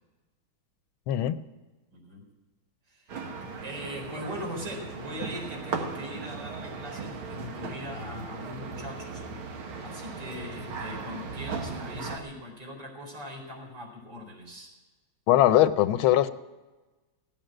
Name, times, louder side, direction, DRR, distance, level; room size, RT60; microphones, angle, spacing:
voice 1, 1.1-1.4 15.3-16.3, left 13 dB, 80° left, 12 dB, 1.5 m, -21 dB
voice 2, 1.9-2.2 2.9-3.1 3.6-14.7, equal, 60° right, -1 dB, 5.0 m, -41 dB
sound 1, 3.1-12.2, right 4 dB, 80° right, 2.2 m, -37 dB
17.0 x 9.0 x 9.0 m, 1.2 s
omnidirectional pair, 2.2 m